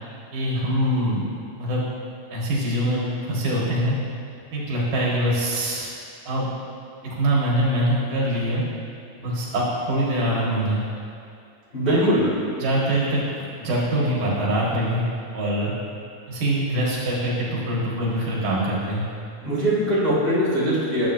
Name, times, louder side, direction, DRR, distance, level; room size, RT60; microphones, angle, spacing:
voice 1, 0.3-1.2 1.6-1.8 2.3-4.0 4.5-5.9 6.3-6.5 7.0-8.6 9.2-10.8 11.8-12.1 12.6-15.0 15.3-15.7 16.3-19.1, right 1 dB, 80° right, -5 dB, 3.2 m, -24 dB
voice 2, 11.7-12.3 19.4-21.1, equal, 25° left, -10 dB, 1.4 m, -21 dB
10.5 x 8.0 x 2.7 m, 2.4 s
omnidirectional pair, 3.8 m